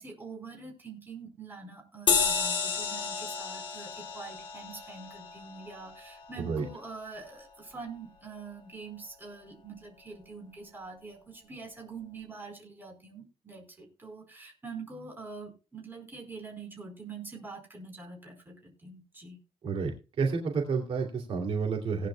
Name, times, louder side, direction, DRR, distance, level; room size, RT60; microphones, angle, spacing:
voice 1, 0.0-19.4, right 4 dB, 20° right, 2 dB, 4.6 m, -45 dB
sound 1, 2.1-7.0, left 6 dB, 55° left, 2.4 m, -32 dB
voice 2, 20.2-22.1, right 5 dB, 65° right, 1 dB, 2.9 m, -30 dB
18.5 x 10.0 x 2.3 m, 0.32 s
wide cardioid pair, 160°, 10 cm